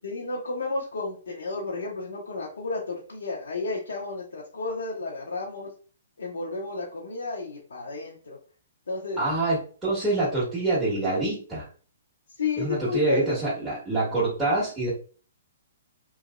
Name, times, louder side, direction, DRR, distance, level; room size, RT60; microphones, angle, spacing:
voice 1, 0.0-5.7 6.2-8.4 8.9-9.2 12.4-13.3, left 3 dB, 75° left, -3 dB, 0.8 m, -32 dB
voice 2, 9.2-11.7 12.6-14.9, right 2 dB, 10° right, -13 dB, 1.5 m, -26 dB
3.1 x 2.7 x 2.4 m, 0.39 s
hypercardioid pair, 130°, 0 cm